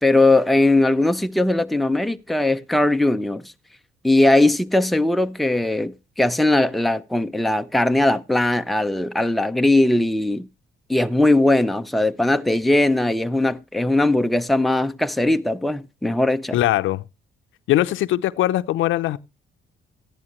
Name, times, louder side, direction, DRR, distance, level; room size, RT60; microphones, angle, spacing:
voice 1, 0.0-3.4 4.0-10.5 10.9-16.6, left 2 dB, ahead, 0.6 m, -19 dB
voice 2, 16.5-17.0 17.7-19.2, left 14 dB, 80° left, 0.6 m, -21 dB
14.0 x 11.0 x 3.0 m
cardioid pair, 90°, 20 cm